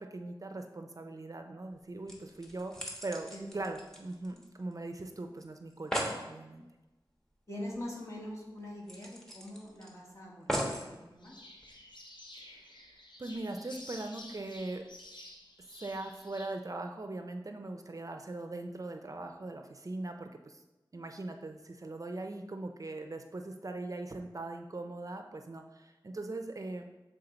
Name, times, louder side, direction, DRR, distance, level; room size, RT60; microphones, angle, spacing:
voice 1, 0.0-6.6 12.4-12.7 13.2-14.9 15.7-20.6 20.9-26.9, right 2 dB, 45° right, 5 dB, 0.5 m, -40 dB
sound 1, 1.7-1.8 2.1-4.7 5.0-5.1 5.4-5.5 5.7-6.2 7.7-7.8 8.2-8.3 8.9-9.9 10.5-10.9 11.6-11.7, equal, 5° left, 1.1 m, -37 dB
voice 2, 3.3-3.6 7.5-11.4, left 1 dB, 35° left, -3 dB, 1.5 m, -43 dB
sound 2, 11.2-16.5, left 1 dB, 65° left, 0.8 m, -51 dB
7.0 x 3.6 x 3.9 m, 1.0 s
wide cardioid pair, 70°, 8 cm